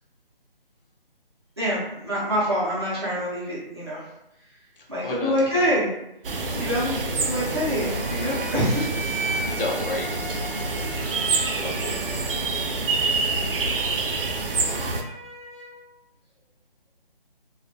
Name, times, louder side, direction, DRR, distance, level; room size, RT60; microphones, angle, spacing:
voice 1, 1.6-4.0 4.9-5.9 6.5-8.9, equal, 30° right, -8 dB, 0.6 m, -25 dB
voice 2, 4.8-5.7 7.8-8.0 9.4-10.2 11.6-12.2, left 2 dB, 70° left, -1 dB, 0.7 m, -32 dB
sound 1, 6.2-15.0, right 3 dB, 70° right, 0.5 m, -27 dB
sound 2, 7.7-15.8, right 2 dB, 15° left, 0.6 m, -37 dB
2.3 x 2.2 x 2.6 m, 0.83 s
figure-of-eight pair, 165°, 29 cm